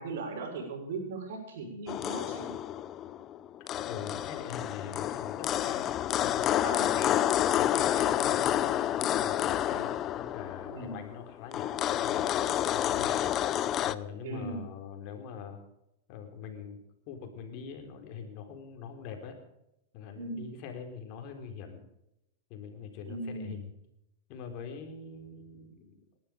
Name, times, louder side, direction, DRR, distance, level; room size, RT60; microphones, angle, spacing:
voice 1, 0.0-2.5 6.6-7.0 10.7-11.0 14.2-14.6 20.2-20.5 23.0-23.5, right 3 dB, 70° right, 2 dB, 6.4 m, -38 dB
sound 1, 1.9-14.0, left 11 dB, 35° left, 0.6 m, -29 dB
voice 2, 3.6-5.9 6.2-6.6 6.9-7.1 7.6-13.2 13.8-15.6 16.1-16.8 17.1-19.4 19.9-21.8 22.5-23.7 24.3-26.0, left 6 dB, 50° left, 4 dB, 3.9 m, -43 dB
19.0 x 12.0 x 5.1 m, 0.85 s
hypercardioid pair, 125°, 0 cm